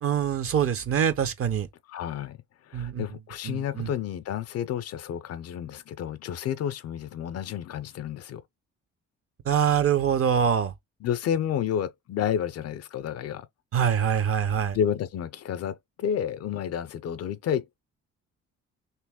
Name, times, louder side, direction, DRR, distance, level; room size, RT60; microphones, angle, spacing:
voice 1, 0.0-1.7 2.7-3.0 3.4-3.9 9.5-10.7 13.7-14.8, right 8 dB, 50° right, 0.6 m, -24 dB
voice 2, 1.9-8.4 11.0-13.5 14.7-17.8, left 9 dB, 55° left, 0.4 m, -30 dB
2.9 x 2.9 x 3.5 m
cardioid pair, 90°, 30 cm